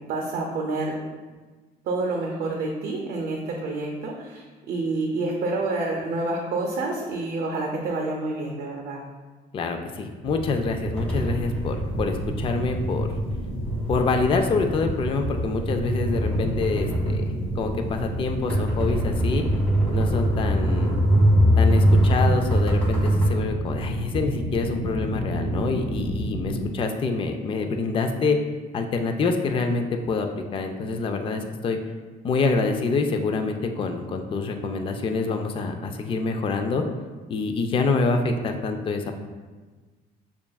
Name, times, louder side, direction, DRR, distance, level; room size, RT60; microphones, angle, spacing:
voice 1, 0.1-0.9 1.8-9.0, right 2 dB, 65° right, 0 dB, 0.6 m, -28 dB
voice 2, 9.5-13.1 13.9-17.2 17.6-19.4 19.9-20.9 21.6-28.4 28.7-31.8 32.2-36.8 37.3-39.1, left 4 dB, 30° left, 5 dB, 0.4 m, -26 dB
sound 1, 10.2-26.7, equal, 20° right, 1.0 m, -31 dB
sound 2, 11.0-23.4, equal, 5° left, 1.1 m, -23 dB
6.4 x 2.4 x 2.2 m, 1.3 s
cardioid pair, 110°, 17 cm